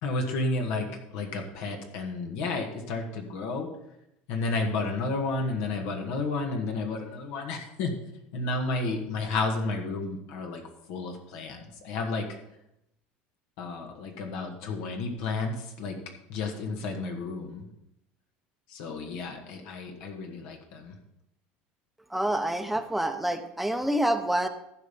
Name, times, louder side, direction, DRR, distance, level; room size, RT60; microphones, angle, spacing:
voice 1, 0.0-3.7 4.3-7.9 8.3-10.6 10.9-12.3 13.6-16.0 16.3-17.7 18.7-21.0, left 3 dB, 75° left, 3 dB, 1.8 m, -32 dB
voice 2, 22.1-24.5, right 1 dB, 5° right, 7 dB, 0.8 m, -27 dB
14.5 x 5.5 x 5.3 m, 0.82 s
supercardioid pair, 125°, 4 cm